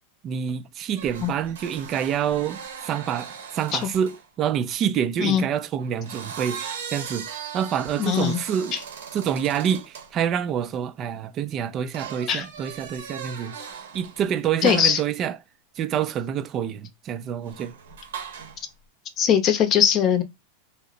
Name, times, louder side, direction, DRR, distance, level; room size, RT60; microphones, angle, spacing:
voice 1, 0.2-6.6 6.9-7.3 7.5-8.8 9.1-13.5 13.9-15.4 15.8-17.7, right 8 dB, 30° right, 0.4 m, -27 dB
sound 1, 0.9-4.2 5.8-10.1 11.9-14.3 14.7-15.0 17.4-18.6, right 7 dB, 90° right, 1.3 m, -39 dB
voice 2, 8.0-8.4 8.7-8.8 12.3-12.5 14.6-15.0 19.2-20.2, left 9 dB, 35° left, 0.7 m, -20 dB
2.7 x 2.1 x 3.8 m
supercardioid pair, 140°, 0 cm